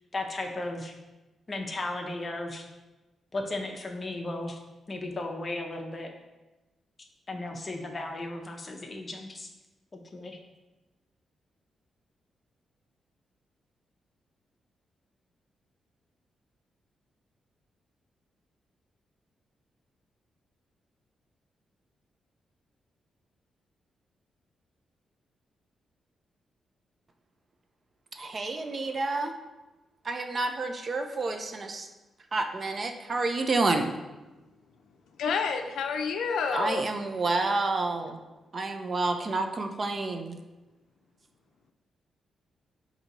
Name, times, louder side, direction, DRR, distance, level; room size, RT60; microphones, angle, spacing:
voice 1, 0.1-0.9 1.5-2.6 3.3-4.6 4.9-6.1 7.3-9.5 9.9-10.4, left 2 dB, 30° left, 2 dB, 0.6 m, -35 dB
voice 2, 28.1-29.3 30.0-31.9 32.3-33.9 36.5-38.2 38.5-40.4, right 3 dB, 35° right, 6 dB, 0.4 m, -29 dB
voice 3, 35.2-36.9, left 5 dB, 90° left, 5 dB, 0.4 m, -29 dB
4.5 x 2.7 x 3.9 m, 1.1 s
cardioid pair, 115°, 0 cm